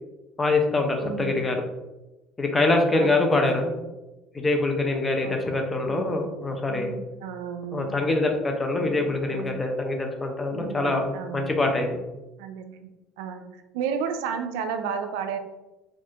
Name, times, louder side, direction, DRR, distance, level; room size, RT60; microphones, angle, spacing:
voice 1, 0.4-1.6 2.4-3.6 4.3-6.9 7.7-11.0 11.3-12.0, left 2 dB, 20° left, 3 dB, 0.5 m, -24 dB
voice 2, 1.0-1.5 2.9-3.9 5.2-5.6 5.9-6.3 6.7-8.0 8.7-9.6 10.5-11.7 12.4-15.4, right 6 dB, 85° right, 7 dB, 0.3 m, -34 dB
4.3 x 2.4 x 2.4 m, 1.0 s
cardioid pair, 115°, 0 cm